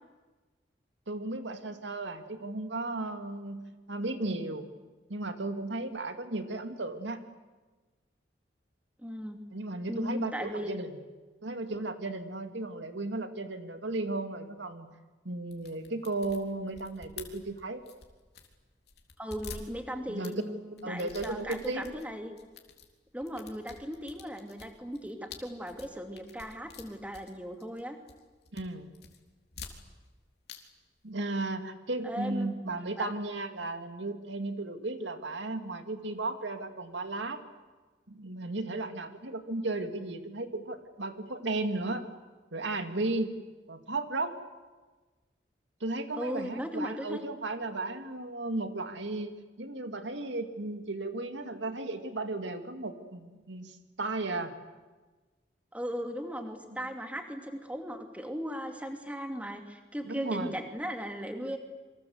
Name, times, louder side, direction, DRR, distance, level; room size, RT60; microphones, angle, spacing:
voice 1, 1.1-4.7 5.1-7.2 9.5-10.9 11.4-14.9 15.2-17.8 20.1-20.3 20.8-21.9 28.5-28.9 31.0-37.4 38.1-42.0 42.5-43.3 43.7-44.3 45.8-54.5 56.7-56.8 60.0-60.5 61.4-61.6, right 2 dB, 80° right, 7 dB, 2.4 m, -35 dB
voice 2, 9.0-9.4 9.9-10.7 19.2-22.3 23.1-28.0 32.0-32.5 33.0-33.1 46.2-47.2 55.7-61.6, equal, 10° right, 4 dB, 2.6 m, -37 dB
sound 1, 15.5-18.6 18.9-20.3 20.8-22.1 22.4-22.9 23.2-27.8 28.1-28.7 28.9-30.2 30.4-30.6 30.8-30.9, left 5 dB, 60° left, 3.7 m, -48 dB
28.0 x 25.0 x 8.1 m, 1.3 s
head